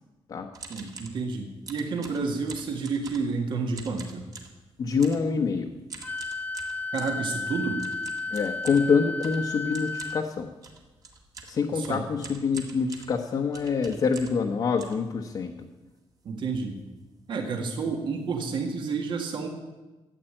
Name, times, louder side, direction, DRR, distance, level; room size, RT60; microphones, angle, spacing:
sound 1, 0.5-1.2 1.7-3.4 3.7-4.6 5.0-5.3 5.9-7.2 7.8-14.5 14.8-15.6 16.1-16.2 16.4-16.7 17.0-17.2 17.7-17.8 18.1-18.4, right 4 dB, 40° right, 1.9 m, -45 dB
voice 1, 0.7-4.2 6.9-7.8 11.7-12.0 16.3-16.8 17.3-19.5, right 4 dB, 55° right, 3 dB, 1.9 m, -30 dB
voice 2, 4.8-5.7 8.3-10.5 11.4-15.5, left 5 dB, 40° left, 1 dB, 1.0 m, -26 dB
Wind instrument woodwind instrument, 6.0-10.2, left 3 dB, 15° left, 0.6 m, -33 dB
13.5 x 8.5 x 8.8 m, 1.1 s
wide cardioid pair, 170°, 10 cm